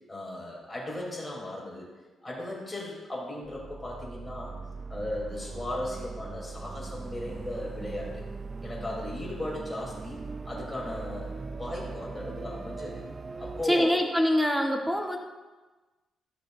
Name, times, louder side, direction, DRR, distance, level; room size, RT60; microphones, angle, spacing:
voice 1, 0.1-1.9 2.2-4.6 4.9-8.2 8.6-11.3 11.6-13.0 13.4-14.0, left 1 dB, 15° left, -4 dB, 2.8 m, -36 dB
sound 1, 3.4-13.7, right 4 dB, 30° right, 0.3 m, -40 dB
voice 2, 13.7-15.2, equal, 5° right, 2 dB, 1.0 m, -24 dB
12.5 x 6.4 x 2.5 m, 1.2 s
cardioid pair, 105°, 0 cm